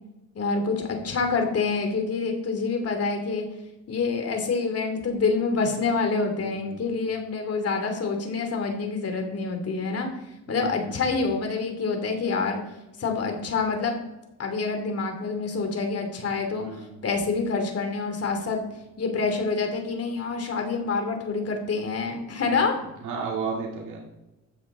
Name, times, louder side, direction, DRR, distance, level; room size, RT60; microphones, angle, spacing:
voice 1, 0.3-3.5 3.9-10.1 10.5-12.6 13.0-14.0 14.4-16.7 17.0-18.6 19.0-22.8, left 4 dB, 50° left, 4 dB, 3.1 m, -27 dB
voice 2, 6.4-6.8 10.5-10.8 16.6-17.0 22.4-22.7 23.0-24.0, right 5 dB, 85° right, -1 dB, 2.2 m, -34 dB
14.5 x 9.6 x 4.0 m, 0.99 s
cardioid pair, 90°, 30 cm